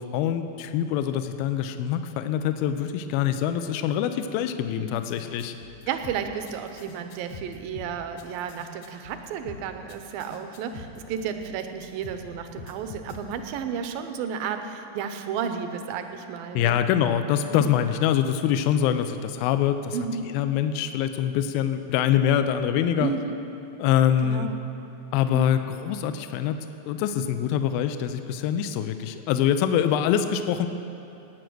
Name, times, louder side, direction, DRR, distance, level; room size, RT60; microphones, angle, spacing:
voice 1, 0.0-5.5 16.6-20.0 20.3-23.1 23.8-24.5 25.1-26.6 26.9-30.7, left 9 dB, 85° left, 9 dB, 2.3 m, -24 dB
sound 1, 4.9-13.6, left 5 dB, 65° left, 2.4 m, -44 dB
voice 2, 5.9-16.8 17.5-17.7 19.9-20.2 23.0-23.4 24.2-24.6 25.3-25.5, right 7 dB, 75° right, 7 dB, 2.3 m, -32 dB
17.5 x 9.1 x 6.2 m, 2.8 s
omnidirectional pair, 4.4 m